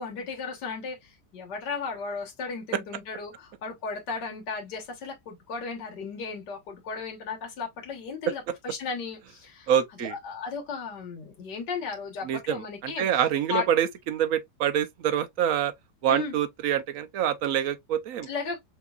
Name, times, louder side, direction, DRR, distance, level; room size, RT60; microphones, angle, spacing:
voice 1, 0.0-9.7 10.0-13.1 13.5-13.7 16.1-16.4 18.3-18.6, left 5 dB, 80° left, 2.0 m, -35 dB
voice 2, 9.7-10.2 12.2-15.7 16.0-18.3, right 9 dB, 65° right, 0.9 m, -26 dB
5.9 x 2.8 x 2.4 m
omnidirectional pair, 1.8 m